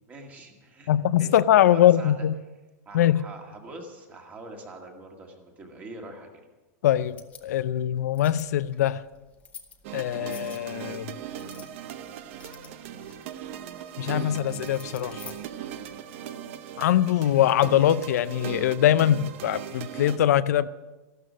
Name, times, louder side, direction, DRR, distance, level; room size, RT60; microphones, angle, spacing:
voice 1, 0.1-0.9 1.2-2.3 2.9-6.4, right 2 dB, 15° right, 1.9 m, -43 dB
voice 2, 0.9-2.3 2.9-3.2 6.8-9.0 9.9-11.2 14.0-15.2 16.8-20.7, left 11 dB, 75° left, 0.5 m, -22 dB
sound 1, 7.0-16.0, left 7 dB, 15° left, 0.9 m, -51 dB
sound 2, 9.8-20.2, right 10 dB, 45° right, 0.8 m, -39 dB
14.0 x 12.5 x 6.2 m
supercardioid pair, 170°, 9 cm